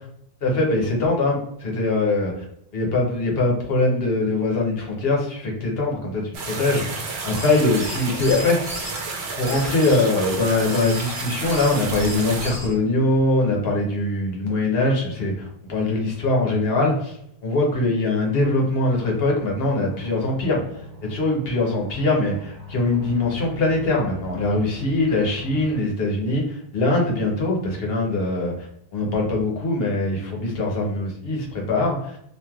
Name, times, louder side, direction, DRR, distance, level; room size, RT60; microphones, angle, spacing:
voice 1, 0.4-2.4 2.7-8.7 9.4-17.2 17.4-20.6 21.0-28.7 28.9-32.2, left 2 dB, 70° left, -1 dB, 1.1 m, -22 dB
sound 1, 6.3-12.5, right 4 dB, 85° right, 0.9 m, -31 dB
sound 2, 7.2-9.0 9.4-12.8, left 1 dB, 30° left, 0.3 m, -37 dB
sound 3, 18.3-25.8, right 2 dB, 25° right, 1.4 m, -42 dB
3.0 x 2.5 x 2.4 m, 0.72 s
omnidirectional pair, 1.0 m